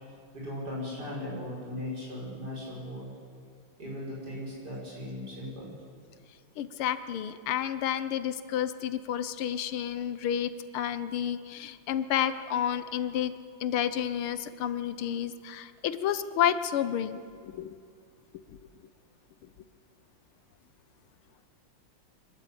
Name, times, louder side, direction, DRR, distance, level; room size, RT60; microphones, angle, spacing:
voice 1, 0.3-3.1 3.8-5.7, left 1 dB, 50° right, -5 dB, 7.1 m, -38 dB
voice 2, 6.6-13.3 13.6-17.7, left 10 dB, 85° left, 13 dB, 1.7 m, -30 dB
24.5 x 12.5 x 8.6 m, 2.2 s
omnidirectional pair, 2.3 m